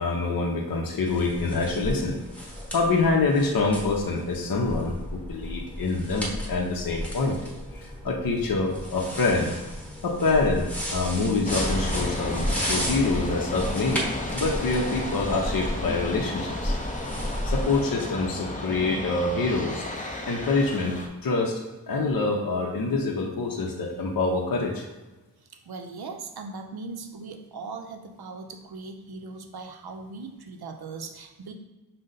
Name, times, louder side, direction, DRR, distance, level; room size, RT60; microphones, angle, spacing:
voice 1, 0.0-2.2 2.7-7.4 7.7-9.6 10.0-14.1 14.3-16.7 17.4-19.8 20.3-24.8, left 3 dB, 60° left, 0 dB, 0.6 m, -26 dB
sound 1, 1.1-17.8, equal, 5° left, 0.9 m, -33 dB
sound 2, 11.4-21.1, left 1 dB, 20° left, 0.5 m, -33 dB
voice 2, 25.5-31.5, right 4 dB, 70° right, 5 dB, 0.6 m, -39 dB
5.3 x 2.1 x 3.8 m, 1.1 s
wide cardioid pair, 85°, 39 cm